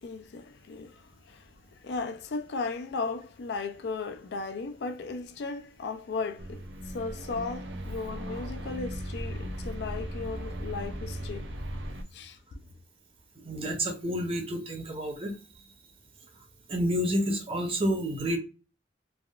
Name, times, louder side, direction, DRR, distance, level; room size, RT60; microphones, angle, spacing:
voice 1, 0.0-6.7 6.9-11.5 12.1-12.6, left 4 dB, 65° left, 0.4 m, -36 dB
sound 1, 6.4-12.0, equal, 75° right, 0.5 m, -37 dB
voice 2, 13.4-15.3 16.7-18.4, equal, 30° right, 0.7 m, -29 dB
3.3 x 2.4 x 2.3 m
head